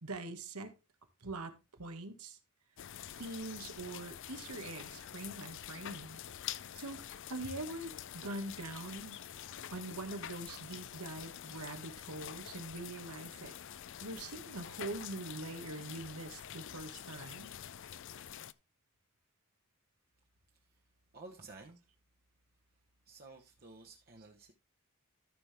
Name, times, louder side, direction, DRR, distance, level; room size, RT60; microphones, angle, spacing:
voice 1, 0.0-0.7 1.2-2.4 3.1-6.2 6.7-9.2 9.7-13.5 14.0-17.5, right 2 dB, 85° right, 1.7 m, -43 dB
sound 1, 2.8-18.5, left 10 dB, 55° left, 0.5 m, -47 dB
voice 2, 20.5-20.8 21.1-21.9 23.0-24.5, right 3 dB, 45° right, 1.1 m, -53 dB
13.5 x 6.0 x 3.5 m
head